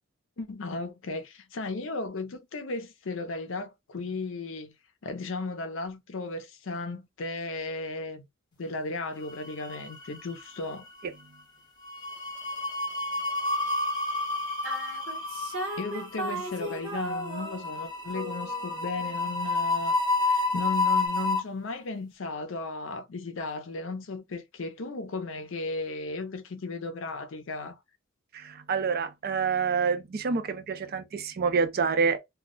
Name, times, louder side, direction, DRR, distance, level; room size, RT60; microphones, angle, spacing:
voice 1, 0.4-4.7 5.0-8.2 8.6-10.9 15.8-27.8, left 3 dB, 60° left, 0.5 m, -35 dB
sound 1, 9.3-10.1 10.4-10.7 11.8-21.4, left 3 dB, 20° left, 0.6 m, -30 dB
sound 2, 14.6-17.9 18.1-19.3, right 1 dB, 70° right, 1.0 m, -36 dB
voice 2, 28.3-32.2, right 5 dB, 45° right, 0.4 m, -27 dB
2.2 x 2.1 x 3.7 m
head